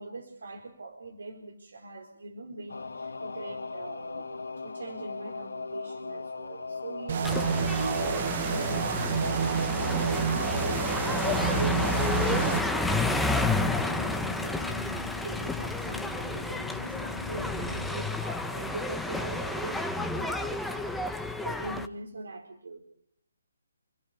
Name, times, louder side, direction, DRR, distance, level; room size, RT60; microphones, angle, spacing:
voice 1, 0.0-22.8, right 3 dB, 75° right, 4 dB, 4.3 m, -41 dB
sound 1, 2.7-17.9, left 4 dB, 80° left, 1.9 m, -39 dB
sound 2, 7.1-12.6, right 7 dB, 45° right, 1.8 m, -29 dB
sound 3, 7.2-21.9, left 2 dB, ahead, 1.3 m, -31 dB
29.0 x 15.0 x 8.2 m, 0.65 s
figure-of-eight pair, 150°, 0 cm